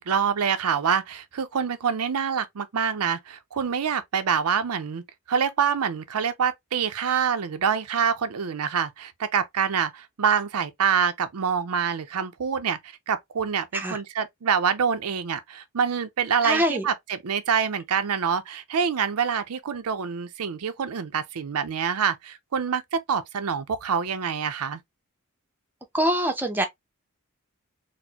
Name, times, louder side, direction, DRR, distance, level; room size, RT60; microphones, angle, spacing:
voice 1, 0.0-24.8, right 7 dB, 85° right, 0.5 m, -26 dB
voice 2, 16.4-16.8 25.9-26.6, right 1 dB, 10° right, 0.6 m, -24 dB
4.2 x 2.1 x 2.8 m
head